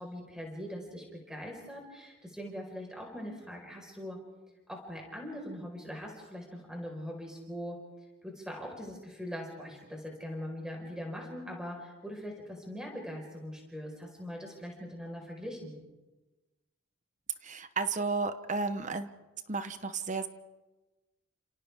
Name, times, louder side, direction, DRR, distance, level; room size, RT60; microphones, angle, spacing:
voice 1, 0.0-4.2 4.7-7.8 8.2-15.8, equal, 5° right, 0 dB, 4.6 m, -41 dB
voice 2, 17.4-19.1 19.5-20.3, right 4 dB, 35° right, 11 dB, 0.9 m, -33 dB
30.0 x 27.5 x 3.6 m, 1.1 s
head